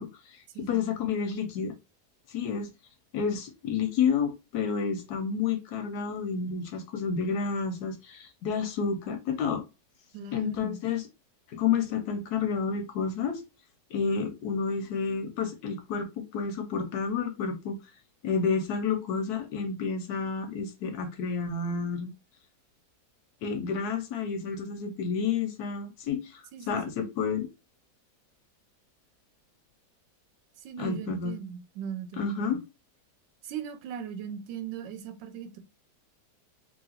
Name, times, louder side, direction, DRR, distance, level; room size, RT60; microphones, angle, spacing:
voice 1, 0.0-1.8 2.3-2.7 3.1-9.6 10.3-11.1 11.5-13.4 13.9-17.8 18.2-22.1 23.4-27.5 30.8-31.4 32.2-32.6, left 6 dB, 70° left, 1.0 m, -30 dB
voice 2, 0.5-0.9 10.1-10.8 26.5-27.0 30.6-32.3 33.4-35.6, right 8 dB, 85° right, 1.3 m, -39 dB
2.8 x 2.7 x 2.8 m
omnidirectional pair, 1.9 m